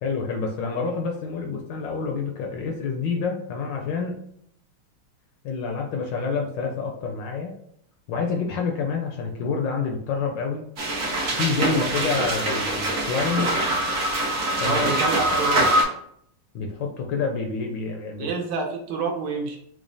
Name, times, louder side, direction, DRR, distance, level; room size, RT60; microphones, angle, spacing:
voice 1, 0.0-4.2 5.4-7.5 8.1-10.6 11.3-13.5 14.6-14.8 16.5-18.3, left 5 dB, 75° left, 2 dB, 1.1 m, -28 dB
sound 1, 10.8-15.8, right 1 dB, 60° right, 0.7 m, -24 dB
voice 2, 14.6-15.7 18.2-19.6, right 4 dB, 80° right, 3 dB, 1.5 m, -28 dB
6.0 x 2.0 x 2.6 m, 0.69 s
omnidirectional pair, 2.3 m